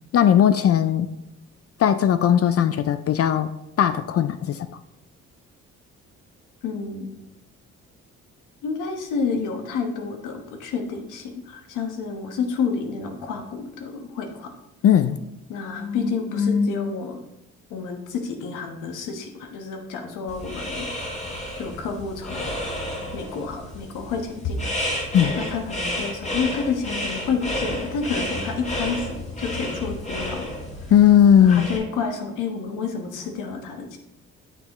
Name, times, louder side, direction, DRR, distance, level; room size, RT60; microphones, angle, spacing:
voice 1, 0.1-1.1 1.8-3.5 3.8-4.7 14.8-15.2 25.1-25.4 30.9-31.7, left 9 dB, 50° left, 12 dB, 0.5 m, -17 dB
voice 2, 6.6-7.2 8.6-14.5 15.5-17.2 17.7-20.9 21.6-22.6 23.1-30.5 30.8-30.9 31.4-34.0, left 5 dB, 90° left, 4 dB, 1.3 m, -29 dB
sound 1, 20.3-31.8, left 1 dB, 25° left, 2.0 m, -31 dB
8.9 x 6.6 x 3.0 m, 0.85 s
cardioid pair, 90°, 30 cm